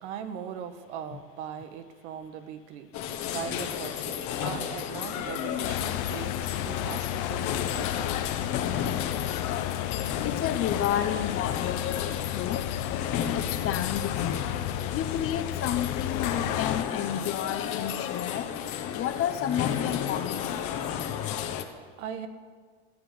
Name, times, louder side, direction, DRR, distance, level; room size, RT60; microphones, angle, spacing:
voice 1, 0.0-8.2 21.4-22.3, right 8 dB, 80° right, 8 dB, 1.6 m, -40 dB
sound 1, 2.9-21.6, left 9 dB, 55° left, 1.6 m, -33 dB
voice 2, 3.2-3.6 10.2-11.8 12.3-12.6 12.9-13.0 13.3-14.5 14.9-18.5 18.9-20.6, left 10 dB, 40° left, 10 dB, 1.1 m, -31 dB
sound 2, 5.6-16.8, left 13 dB, 75° left, 0.9 m, -33 dB
15.0 x 8.3 x 9.7 m, 1.5 s
supercardioid pair, 120°, 34 cm